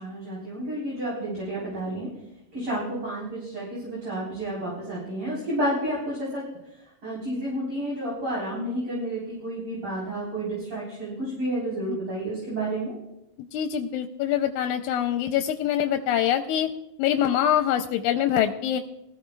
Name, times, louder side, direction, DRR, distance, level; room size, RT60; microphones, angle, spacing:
voice 1, 0.0-2.1 2.5-6.4 7.0-12.9, right 1 dB, 45° right, -6 dB, 4.6 m, -30 dB
voice 2, 13.4-16.7 17.0-18.8, left 10 dB, 90° left, 6 dB, 2.0 m, -24 dB
20.0 x 14.0 x 2.3 m, 0.87 s
omnidirectional pair, 3.4 m